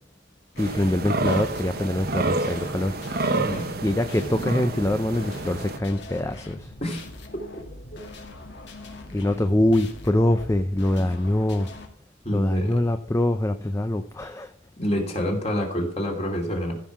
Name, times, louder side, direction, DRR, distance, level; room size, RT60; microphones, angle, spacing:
sound 1, 0.5-11.9, left 2 dB, 60° left, 2.3 m, -42 dB
voice 1, 0.6-2.9 3.8-6.7 9.1-11.7 12.3-14.5, left 1 dB, 15° left, 8 dB, 0.5 m, -24 dB
sound 2, 0.6-5.8, right 3 dB, 50° right, 1.0 m, -29 dB
voice 2, 3.3-3.7 6.8-7.0 7.9-8.0 12.2-12.8 14.8-16.8, equal, 30° left, 1 dB, 2.8 m, -27 dB
15.0 x 5.6 x 7.2 m, 0.62 s
head